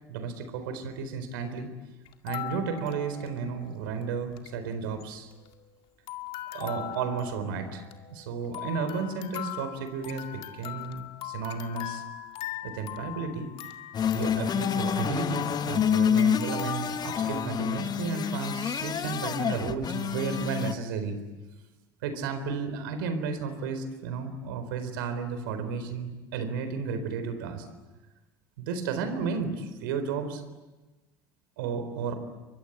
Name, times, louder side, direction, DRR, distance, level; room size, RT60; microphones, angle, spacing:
voice 1, 0.1-1.7 2.2-5.3 6.5-7.8 8.1-12.0 12.6-13.5 14.1-21.2 22.0-27.7 28.6-30.4 31.6-32.1, right 5 dB, 70° right, 9 dB, 4.2 m, -33 dB
sound 1, 2.1-3.7 4.0-4.1 4.3-4.5 5.0-5.8 6.1-17.5, left 10 dB, 55° left, 2.2 m, -40 dB
sound 2, 13.9-20.7, left 8 dB, 35° left, 1.4 m, -28 dB
29.5 x 24.0 x 8.2 m, 1.2 s
hypercardioid pair, 75°, 12 cm